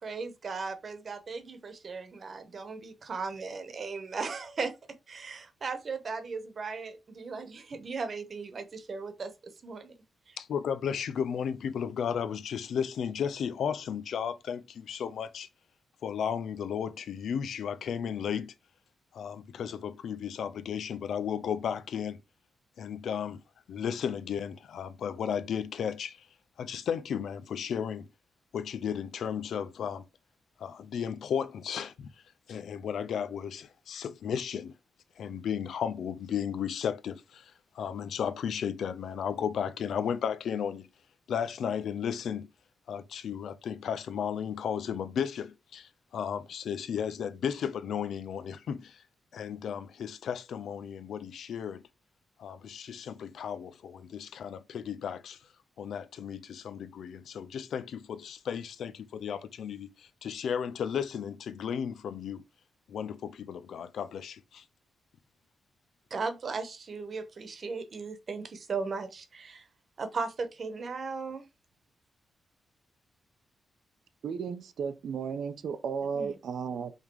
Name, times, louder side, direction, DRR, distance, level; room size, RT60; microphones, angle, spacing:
voice 1, 0.0-4.7 5.1-9.9 10.3-10.4 66.1-69.7 70.0-71.4 76.1-76.3, right 4 dB, 45° right, 1.2 m, -37 dB
voice 2, 10.4-15.5 16.0-18.5 19.1-22.2 22.8-23.4 23.7-26.3 26.6-28.1 28.5-30.0 30.6-32.1 32.5-34.7 35.2-40.9 41.3-42.5 42.9-49.0 49.3-51.8 52.4-55.4 55.8-62.4 62.9-64.6, left 8 dB, 80° left, 0.7 m, -34 dB
voice 3, 74.2-76.9, right 6 dB, 75° right, 0.8 m, -34 dB
5.4 x 3.7 x 4.7 m
wide cardioid pair, 130°, 0 cm